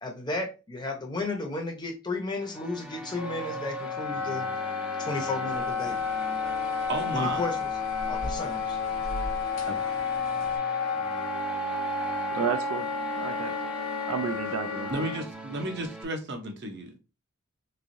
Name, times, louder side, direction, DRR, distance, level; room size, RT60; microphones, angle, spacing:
voice 1, 0.0-4.5 5.0-6.0 7.1-7.7 8.1-8.8, left 2 dB, 20° left, 0.7 m, -33 dB
sound 1, 2.4-16.0, right 1 dB, 5° right, 0.4 m, -44 dB
Wind instrument woodwind instrument, 3.2-15.2, left 4 dB, 80° left, 0.7 m, -31 dB
Trekking in Khao Yai National Park Thailand, 5.5-10.6, equal, 65° left, 1.2 m, -42 dB
voice 2, 6.9-7.5 9.7-9.8 14.9-17.0, right 1 dB, 50° right, 0.8 m, -33 dB
voice 3, 12.3-13.6 14.1-15.1, right 7 dB, 70° right, 0.4 m, -32 dB
3.5 x 3.2 x 2.6 m
head